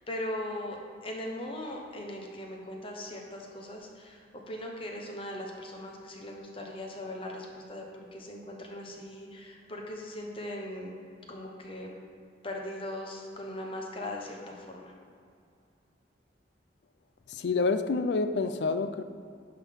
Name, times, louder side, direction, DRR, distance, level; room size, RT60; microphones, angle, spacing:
voice 1, 0.1-10.9 11.3-11.9 12.4-14.9, left 1 dB, 30° left, 0 dB, 1.0 m, -39 dB
voice 2, 17.3-19.0, left 4 dB, 70° left, 10 dB, 0.5 m, -28 dB
10.0 x 3.8 x 5.3 m, 2.4 s
head